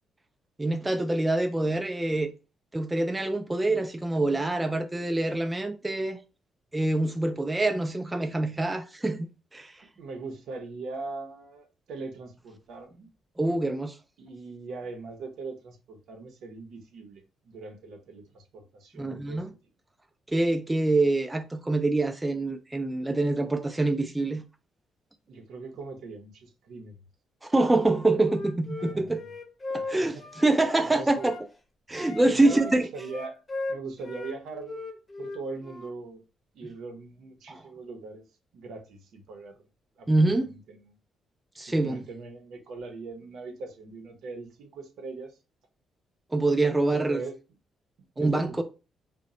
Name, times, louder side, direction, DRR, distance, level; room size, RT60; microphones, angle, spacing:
voice 1, 0.6-2.3 2.7-6.2 6.7-9.8 13.4-14.0 19.0-19.5 20.3-24.4 27.4-29.2 29.7-31.3 31.9-32.9 37.5-37.6 40.1-40.5 41.6-42.0 46.3-47.2 48.2-48.6, right 2 dB, 15° right, 0.3 m, -25 dB
voice 2, 10.0-13.1 14.2-19.4 25.3-27.0 28.8-29.3 29.8-30.1 30.8-31.3 32.2-33.4 33.7-34.9 35.2-36.2 36.5-38.3 38.5-39.6 40.0-41.0 41.7-45.4 46.9-47.3 48.2-48.6, right 3 dB, 75° right, 0.6 m, -40 dB
Wind instrument woodwind instrument, 27.8-31.5 31.9-34.4 34.6-35.9, left 3 dB, 25° left, 0.7 m, -38 dB
2.1 x 2.0 x 3.7 m
cardioid pair, 90°, 0 cm